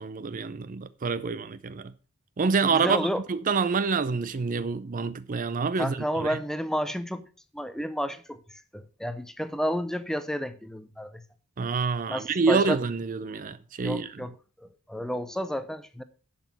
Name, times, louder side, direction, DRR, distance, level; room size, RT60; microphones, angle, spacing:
voice 1, 0.0-1.9 2.4-6.4 11.6-14.1, right 4 dB, 40° right, 0.5 m, -27 dB
voice 2, 2.7-3.2 5.8-7.3 7.5-11.2 12.1-12.8 13.8-14.3 14.6-16.0, equal, ahead, 0.7 m, -31 dB
11.0 x 6.0 x 6.0 m
head